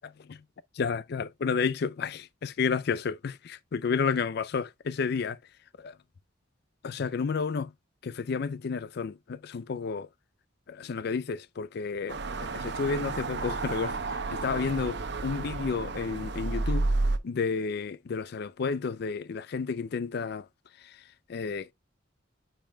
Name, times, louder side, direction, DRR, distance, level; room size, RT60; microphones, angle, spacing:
voice 1, 0.7-5.4 5.8-6.0 6.8-7.7 8.0-10.1 10.7-16.9 17.2-20.5 20.7-21.7, left 5 dB, 55° left, 0.4 m, -31 dB
sound 1, 12.1-17.2, right 3 dB, 60° right, 0.8 m, -31 dB
8.8 x 5.2 x 2.2 m
head